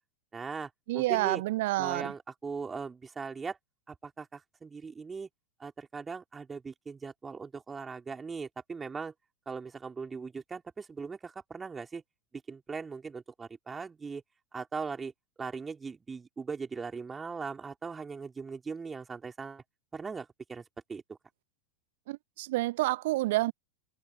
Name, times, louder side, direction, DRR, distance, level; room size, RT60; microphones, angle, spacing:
voice 1, 0.3-1.4 1.8-3.6 3.9-5.3 5.6-9.1 9.5-12.0 12.5-14.2 14.5-15.1 15.4-19.6 19.9-20.6 20.9-21.2, right 5 dB, 15° right, 4.6 m, -39 dB
voice 2, 0.9-2.1 22.1-23.5, right 18 dB, 50° right, 0.9 m, -29 dB
figure-of-eight pair, 90°, 0 cm